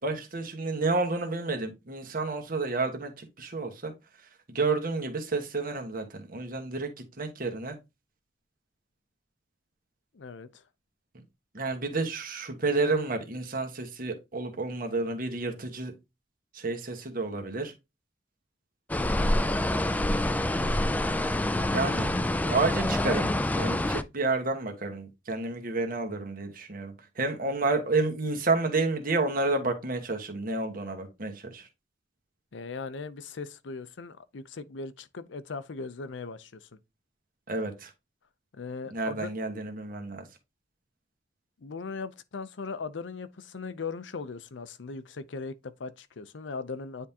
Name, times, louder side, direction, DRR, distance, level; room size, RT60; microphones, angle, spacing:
voice 1, 0.0-3.9 4.5-6.9 7.2-7.8 11.5-15.9 16.5-17.7 21.7-22.1 22.5-31.7 37.5-37.9 38.9-40.2, right 3 dB, 50° right, 1.3 m, -30 dB
voice 2, 10.1-10.6 32.5-36.8 38.5-39.3 41.6-47.1, left 4 dB, 85° left, 0.6 m, -39 dB
sound 1, 18.9-24.0, left 1 dB, 10° left, 0.3 m, -26 dB
9.5 x 3.6 x 2.8 m
head